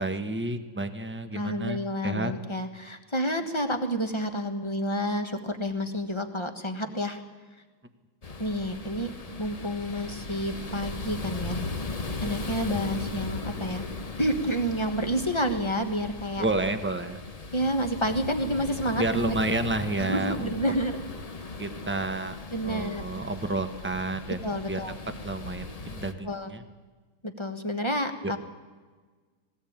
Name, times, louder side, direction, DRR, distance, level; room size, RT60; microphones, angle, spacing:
voice 1, 0.0-2.3 16.4-17.2 19.0-20.5 21.6-22.4 22.6-24.8 25.2-26.6 28.2-28.4, right 2 dB, 10° right, 8 dB, 0.5 m, -30 dB
voice 2, 1.3-7.2 8.4-9.1 9.4-11.6 12.2-13.9 14.2-16.4 17.5-19.4 20.0-21.0 22.5-23.0 24.4-25.0 26.2-26.5 27.2-28.4, equal, 15° left, 7 dB, 1.1 m, -29 dB
sound 1, 8.2-26.1, left 3 dB, 40° left, 0.5 m, -37 dB
20.0 x 17.5 x 8.8 m, 1.4 s
omnidirectional pair, 2.3 m